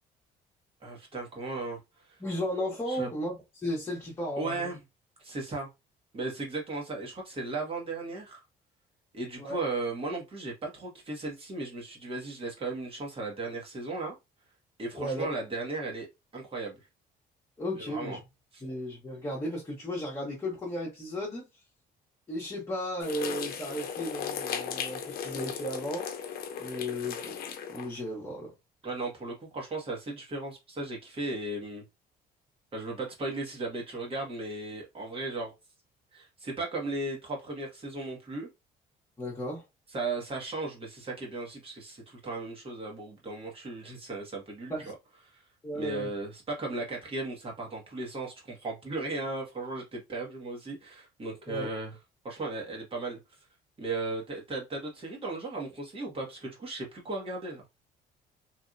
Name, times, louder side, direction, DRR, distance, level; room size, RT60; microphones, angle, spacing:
voice 1, 0.8-1.8 2.1-2.2 2.9-3.1 4.4-4.8 5.2-5.7 6.1-8.4 9.1-14.1 14.8-16.1 16.3-16.8 17.7-18.2 18.5-18.6 28.8-31.8 32.7-35.5 36.1-38.5 39.9-44.7 45.3-45.4 45.8-51.9 52.2-53.2 53.8-57.6, right 2 dB, 35° right, 1.5 m, -36 dB
voice 2, 2.2-4.7 9.4-9.6 14.9-15.3 17.6-18.2 18.6-21.5 22.3-26.1 26.6-27.3 27.7-28.5 39.2-39.6 44.7-44.9 45.6-46.1 51.5-51.7, equal, 20° left, 1.3 m, -35 dB
sound 1, 23.0-28.0, left 7 dB, 60° left, 0.7 m, -36 dB
3.2 x 2.7 x 2.6 m
cardioid pair, 110°, 17 cm